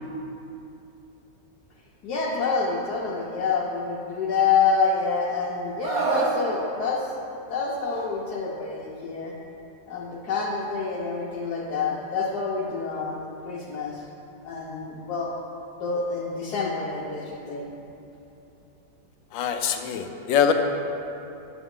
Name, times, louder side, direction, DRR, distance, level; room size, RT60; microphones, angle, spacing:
voice 1, 2.0-7.1 7.5-9.3 9.9-14.0 14.4-15.3 15.8-17.6, left 4 dB, 65° left, -5 dB, 1.3 m, -27 dB
Screaming, 5.8-6.4 7.9-8.1, right 4 dB, 60° right, 1.2 m, -26 dB
voice 2, 19.3-20.5, left 8 dB, 90° left, 6 dB, 1.3 m, -23 dB
9.4 x 7.0 x 3.7 m, 2.8 s
omnidirectional pair, 2.0 m